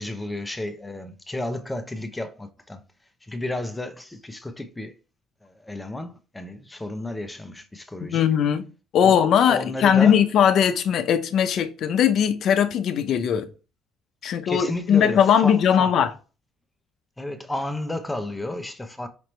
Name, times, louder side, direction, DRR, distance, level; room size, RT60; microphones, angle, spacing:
voice 1, 0.0-2.8 3.2-5.0 5.4-8.3 9.0-10.2 14.2-15.9 17.2-19.1, left 1 dB, 10° left, 0.8 m, -32 dB
voice 2, 8.1-8.6 8.9-13.5 14.2-16.1, left 8 dB, 60° left, 0.7 m, -19 dB
5.2 x 2.9 x 3.3 m
supercardioid pair, 85°, 0 cm